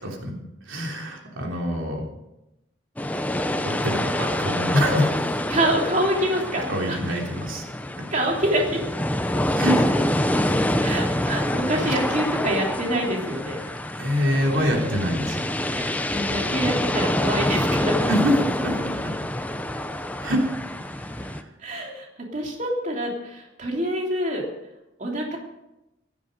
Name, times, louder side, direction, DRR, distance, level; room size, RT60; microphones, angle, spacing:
voice 1, 0.0-0.3 0.6-2.0 3.6-5.3 6.7-7.7 9.3-9.9 11.8-12.2 13.6-15.4 18.1-18.4 18.6-18.7 20.2-20.4 20.8-21.5, equal, 90° right, 0 dB, 3.3 m, -25 dB
sound 1, 3.0-21.4, left 1 dB, 10° left, 0.8 m, -26 dB
voice 2, 5.5-7.0 8.1-8.8 10.8-13.6 15.7-18.0 21.6-22.1 22.3-24.5 25.0-25.4, right 1 dB, 40° right, -1 dB, 3.2 m, -26 dB
16.0 x 13.5 x 5.3 m, 0.92 s
head